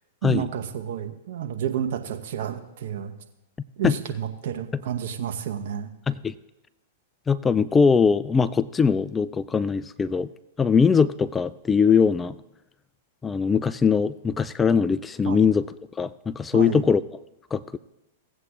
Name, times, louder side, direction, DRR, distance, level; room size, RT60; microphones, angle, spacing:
voice 1, 0.2-3.1 3.8-5.9 15.3-15.5 16.5-16.8, right 9 dB, 60° right, 5 dB, 1.0 m, -30 dB
voice 2, 7.3-10.3 10.6-12.3 13.2-15.6 16.0-17.0 17.5-17.8, left 6 dB, 15° left, 15 dB, 0.3 m, -21 dB
18.0 x 8.0 x 2.4 m, 0.94 s
hypercardioid pair, 105°, 0 cm